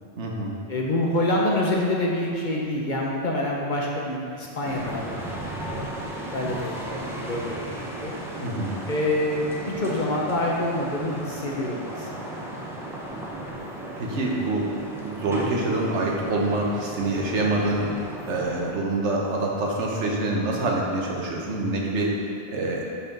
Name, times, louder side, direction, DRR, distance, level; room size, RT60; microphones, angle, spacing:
voice 1, 0.2-0.6 8.4-8.8 14.0-22.9, right 2 dB, 75° right, -2 dB, 1.3 m, -26 dB
voice 2, 0.7-6.0 6.3-8.2 8.9-12.3, left 1 dB, 45° left, -3 dB, 0.9 m, -27 dB
sound 1, 4.6-18.7, right 1 dB, 5° right, 0.5 m, -36 dB
5.4 x 4.9 x 5.9 m, 2.7 s
omnidirectional pair, 1.2 m